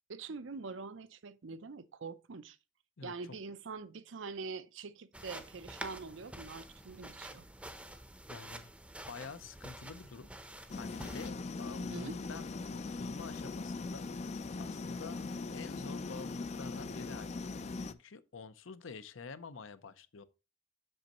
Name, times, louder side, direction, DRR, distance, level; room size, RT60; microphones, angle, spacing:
voice 1, 0.1-2.6 3.0-7.4 11.8-12.1, right 4 dB, 70° right, 0.6 m, -44 dB
voice 2, 3.0-3.4 8.3-8.7 9.1-10.3 10.8-14.1 14.6-15.2 15.5-17.4 17.8-20.2, left 4 dB, 75° left, 0.7 m, -48 dB
sound 1, 5.1-11.3, right 1 dB, 5° right, 0.6 m, -48 dB
sound 2, 10.7-17.9, left 3 dB, 35° left, 0.4 m, -40 dB
7.8 x 6.2 x 2.9 m
head